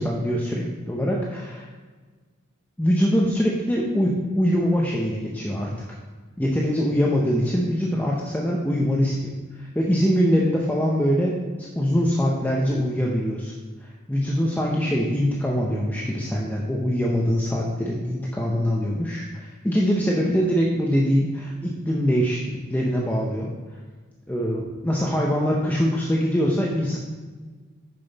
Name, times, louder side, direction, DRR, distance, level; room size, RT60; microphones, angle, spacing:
voice 1, 0.0-1.7 2.8-5.7 6.4-9.3 9.6-13.5 13.8-23.5 24.3-27.0, equal, 10° left, -3 dB, 0.6 m, -23 dB
6.7 x 6.0 x 4.0 m, 1.4 s
head